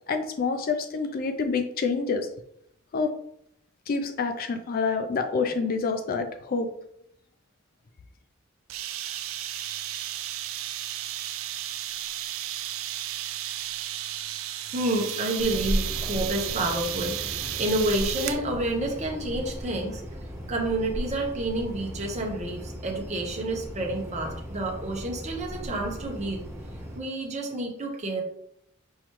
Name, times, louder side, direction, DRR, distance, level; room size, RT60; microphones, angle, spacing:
voice 1, 0.1-2.3 2.9-3.1 3.9-6.7, left 4 dB, 45° left, 7 dB, 0.4 m, -27 dB
sound 1, 8.7-18.4, right 12 dB, 75° right, 0.4 m, -33 dB
voice 2, 14.7-20.0 20.5-26.4 26.9-28.2, right 1 dB, 35° right, 0 dB, 0.9 m, -29 dB
sound 2, 15.4-27.0, equal, 15° right, 0.8 m, -36 dB
5.5 x 3.1 x 3.0 m, 0.72 s
head